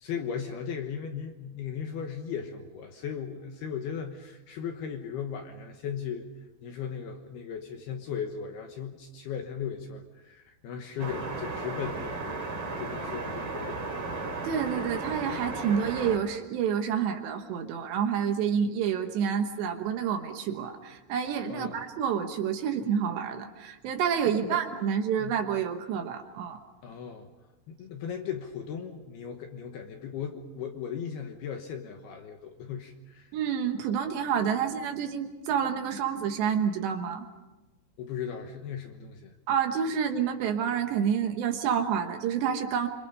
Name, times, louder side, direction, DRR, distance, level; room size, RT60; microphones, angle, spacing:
voice 1, 0.0-6.3 6.6-14.2 21.5-21.8 24.4-24.6 25.2-25.4 26.8-27.3 27.7-33.3 38.0-39.3, left 7 dB, 70° left, 4 dB, 2.6 m, -37 dB
sound 1, 11.0-16.2, right 3 dB, 35° right, 3.5 m, -35 dB
voice 2, 14.4-26.6 33.3-37.2 39.5-42.9, right 7 dB, 70° right, 6 dB, 3.1 m, -28 dB
27.5 x 26.0 x 5.5 m, 1.1 s
omnidirectional pair, 5.8 m